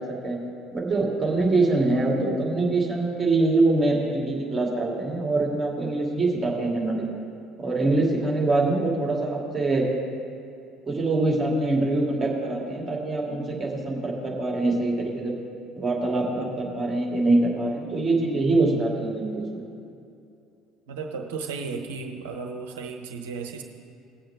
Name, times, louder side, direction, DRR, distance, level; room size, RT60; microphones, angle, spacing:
voice 1, 0.7-7.1 7.6-9.9 10.9-15.4 15.8-19.6, right 2 dB, 20° right, -3 dB, 2.5 m, -24 dB
voice 2, 20.9-23.6, right 5 dB, 65° right, 3 dB, 0.9 m, -34 dB
18.5 x 7.5 x 3.4 m, 2.6 s
figure-of-eight pair, 60°, 0 cm